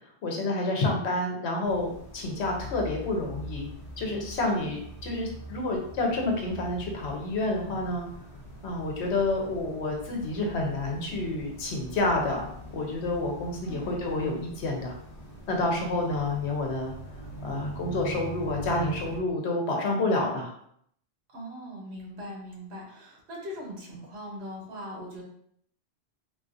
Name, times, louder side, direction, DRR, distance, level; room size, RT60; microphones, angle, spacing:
voice 1, 0.2-3.7 4.0-8.1 8.6-15.0 15.5-16.9 17.4-20.5, left 2 dB, 85° left, 1 dB, 1.0 m, -29 dB
sound 1, 1.6-19.2, right 1 dB, 60° left, 1.1 m, -43 dB
voice 2, 4.5-4.8 13.6-14.0 21.3-25.2, equal, 80° right, -2 dB, 1.2 m, -40 dB
3.6 x 2.4 x 2.6 m, 0.68 s
omnidirectional pair, 1.1 m